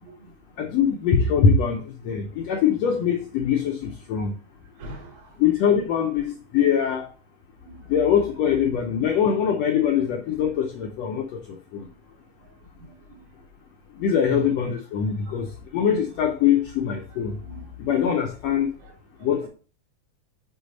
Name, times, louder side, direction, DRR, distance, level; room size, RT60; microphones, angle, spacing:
voice 1, 0.0-0.3 4.8-5.3 7.6-7.9 12.8-13.2 14.2-14.5 15.3-15.4 17.4-17.7, right 2 dB, 65° right, 3.3 m, -40 dB
voice 2, 0.6-4.3 5.4-7.1 7.9-11.4 11.7-11.8 14.0-15.5 15.7-17.3 17.8-18.7 19.2-19.5, left 7 dB, 85° left, 1.5 m, -22 dB
6.6 x 4.6 x 3.9 m
omnidirectional pair, 3.7 m